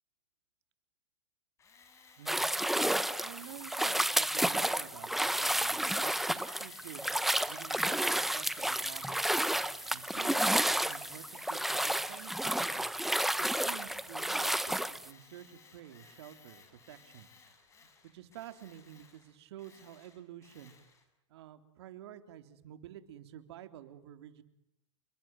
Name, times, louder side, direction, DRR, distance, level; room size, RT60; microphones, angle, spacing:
Tools, 1.6-10.4 10.7-12.7 12.9-21.0, left 5 dB, 20° left, 6.7 m, -59 dB
voice 1, 2.2-2.5 3.2-7.2 7.5-9.4 9.9-13.0 13.4-17.3 18.1-20.7 21.3-24.4, right 11 dB, 65° right, 8 dB, 3.6 m, -50 dB
sound 1, 2.3-15.1, right 1 dB, ahead, 1.0 m, -31 dB
30.0 x 23.0 x 7.8 m, 0.84 s
supercardioid pair, 145°, 15 cm